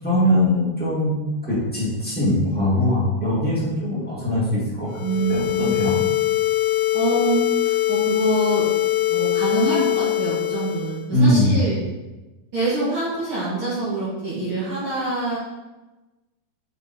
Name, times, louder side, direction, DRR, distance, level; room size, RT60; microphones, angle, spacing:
voice 1, 0.0-1.1 1.5-4.9 5.3-5.9 11.1-11.6, left 1 dB, 5° left, -9 dB, 0.7 m, -21 dB
sound 1, 4.9-11.1, left 15 dB, 85° left, 2.8 m, -22 dB
voice 2, 5.0-6.0 6.9-7.4 7.6-8.7 9.1-11.8 12.5-15.4, right 3 dB, 50° right, -9 dB, 1.7 m, -25 dB
6.1 x 5.8 x 4.4 m, 1.1 s
omnidirectional pair, 4.9 m